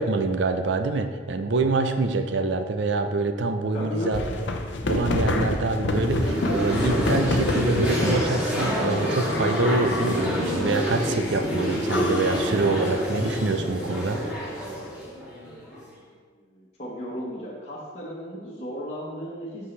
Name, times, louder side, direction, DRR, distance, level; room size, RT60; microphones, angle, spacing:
voice 1, 0.0-4.2 4.9-14.2, right 3 dB, 70° right, 7 dB, 0.5 m, -25 dB
voice 2, 3.7-4.3 16.3-19.7, equal, 35° left, -7 dB, 1.2 m, -36 dB
sound 1, 3.8-8.3 9.1-10.4 10.9-11.4 11.9-13.7, left 1 dB, 70° left, 0.7 m, -28 dB
sound 2, 5.9-15.9, equal, 5° right, 2.1 m, -28 dB
8.2 x 5.6 x 3.2 m, 1.5 s
head